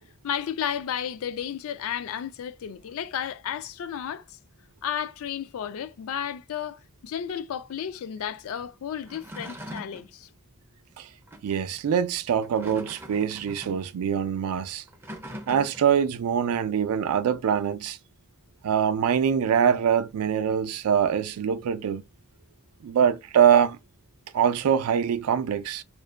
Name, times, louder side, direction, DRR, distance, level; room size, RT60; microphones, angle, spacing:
voice 1, 0.2-4.4 4.8-10.3, left 9 dB, 70° left, 0.3 m, -33 dB
sound 1, 9.0-10.1 11.3-11.5 12.3-13.9 14.9-15.9, equal, 10° right, 0.4 m, -41 dB
voice 2, 11.4-14.8 15.5-18.0 18.6-22.0 22.8-23.8 24.3-25.8, right 8 dB, 80° right, 0.3 m, -24 dB
2.5 x 2.2 x 2.3 m
head